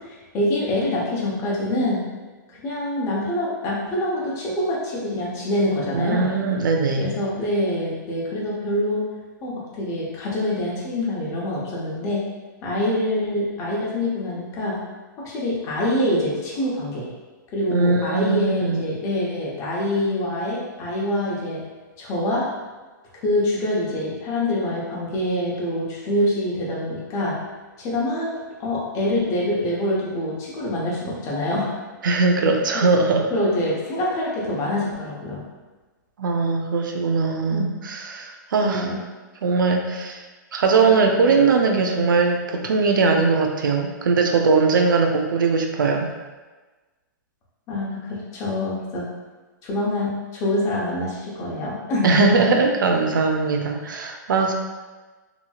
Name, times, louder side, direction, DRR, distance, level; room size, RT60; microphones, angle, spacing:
voice 1, 0.3-2.1 2.5-6.3 7.0-9.0 9.4-12.2 12.6-14.8 15.2-17.1 17.5-21.6 22.0-22.5 23.1-27.4 27.8-28.3 28.6-31.7 32.7-33.0 33.3-35.4 37.5-37.8 38.6-39.0 47.7-49.1 49.6-52.5, left 1 dB, 30° left, -5 dB, 0.8 m, -25 dB
voice 2, 5.9-7.2 17.7-18.8 32.0-33.3 36.2-38.9 39.4-40.2 40.5-46.1 52.0-54.5, right 4 dB, 85° right, 3 dB, 0.4 m, -20 dB
2.9 x 2.7 x 2.3 m, 1.3 s
hypercardioid pair, 140°, 11 cm